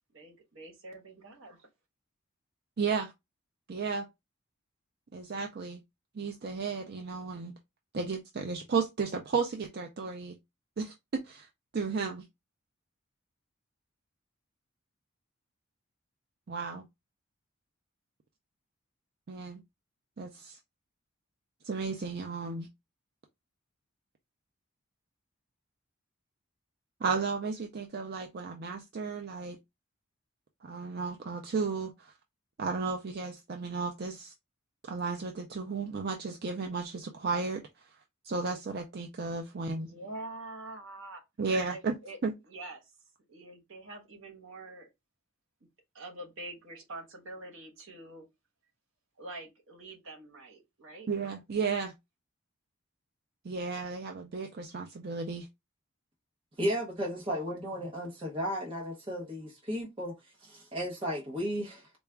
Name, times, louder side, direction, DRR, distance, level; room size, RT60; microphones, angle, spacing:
voice 1, 0.1-1.6 39.7-41.2 41.7-42.2 42.5-42.9 43.3-44.9 45.9-48.3 49.2-51.1, right 2 dB, 65° right, 1.2 m, -45 dB
voice 2, 2.8-3.1 3.7-4.1 5.1-5.8 6.1-7.5 7.9-10.4 10.8-11.5 11.7-12.2 16.5-16.8 19.3-19.6 20.2-20.6 21.6-22.7 27.0-29.6 30.6-32.1 32.6-34.3 34.8-37.9 38.2-39.9 41.4-41.9 42.2-42.3 51.1-51.9 53.4-55.5, right 4 dB, 50° right, 0.4 m, -34 dB
voice 3, 56.6-60.1 60.4-62.0, equal, 25° right, 0.8 m, -34 dB
4.0 x 2.3 x 3.3 m
head